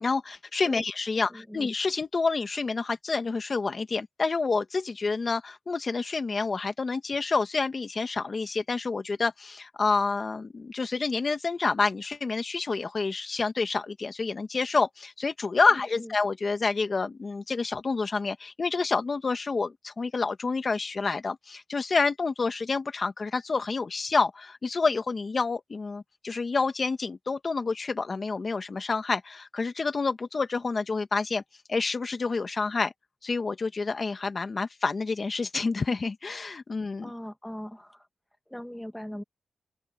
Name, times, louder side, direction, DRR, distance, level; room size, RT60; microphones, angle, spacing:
voice 1, 0.0-31.4 31.7-32.9 33.2-37.1, left 4 dB, 45° left, 1.7 m, -28 dB
voice 2, 1.2-1.6 15.7-16.1 37.0-38.1 38.5-39.2, equal, 5° left, 1.9 m, -40 dB
open air
cardioid pair, 80°, 0 cm